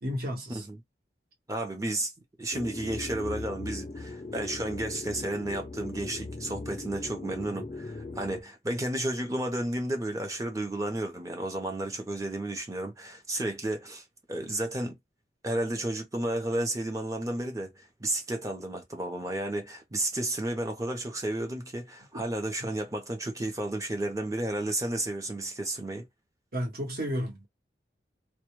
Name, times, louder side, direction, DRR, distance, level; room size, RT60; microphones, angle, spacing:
voice 1, 0.0-0.6 22.1-22.2 26.5-27.5, equal, 55° right, 1.0 m, -32 dB
voice 2, 1.5-2.1 2.4-15.0 15.4-26.0, right 1 dB, 20° right, 0.6 m, -32 dB
sound 1, 2.5-8.4, left 2 dB, 30° left, 0.3 m, -39 dB
2.2 x 2.2 x 3.0 m
head